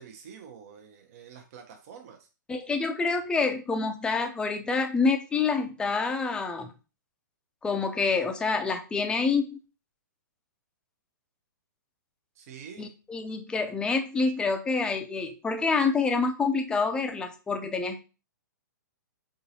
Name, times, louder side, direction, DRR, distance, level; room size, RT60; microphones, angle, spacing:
voice 1, 0.0-2.3 12.3-12.9, right 7 dB, 45° right, 4 dB, 0.7 m, -47 dB
voice 2, 2.5-6.7 7.6-9.6 12.8-18.0, left 4 dB, 10° left, 6 dB, 0.5 m, -27 dB
3.9 x 3.7 x 2.7 m, 0.31 s
hypercardioid pair, 125°, 11 cm